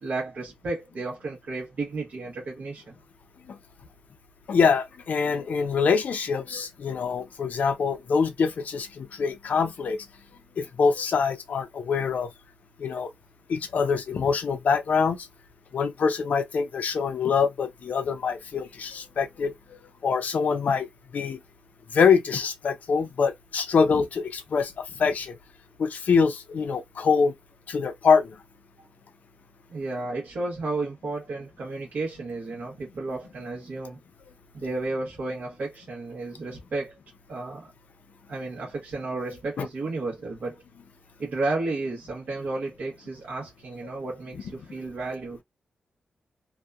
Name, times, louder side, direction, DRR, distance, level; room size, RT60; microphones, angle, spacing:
voice 1, 0.0-2.9 28.8-28.9 29.7-34.0 34.5-36.9 37.3-37.7 38.3-40.6 41.2-45.4, right 3 dB, 60° right, 0.9 m, -32 dB
voice 2, 4.5-10.0 10.6-12.3 12.8-13.1 13.5-15.3 15.7-21.4 21.9-25.4 25.8-27.3 27.7-28.4 39.6-39.7, left 5 dB, 65° left, 0.5 m, -24 dB
2.7 x 2.2 x 2.3 m
wide cardioid pair, 155°, 3 cm